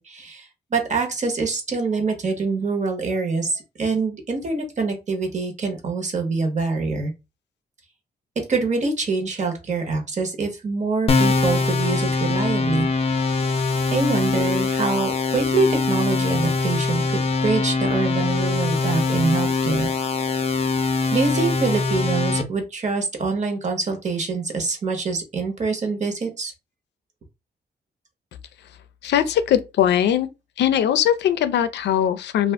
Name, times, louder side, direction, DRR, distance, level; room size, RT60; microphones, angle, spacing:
voice 1, 0.0-7.1 8.5-12.9 13.9-19.9 21.1-26.5, right 4 dB, 45° right, 1.0 m, -25 dB
sound 1, 11.1-22.4, left 4 dB, 35° left, 0.5 m, -22 dB
voice 2, 29.0-30.3 30.6-32.5, left 10 dB, 85° left, 0.4 m, -20 dB
2.5 x 2.4 x 3.4 m
cardioid pair, 115°, 17 cm